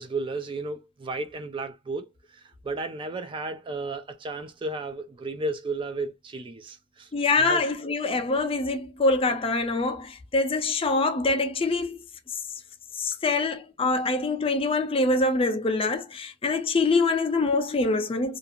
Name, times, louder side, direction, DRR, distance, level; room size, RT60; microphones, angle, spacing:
voice 1, 0.0-7.1 7.4-7.6, right 2 dB, 25° right, 0.3 m, -33 dB
voice 2, 7.1-12.0 12.3-12.4 12.9-18.4, left 3 dB, 30° left, 0.5 m, -25 dB
2.5 x 2.3 x 2.7 m
head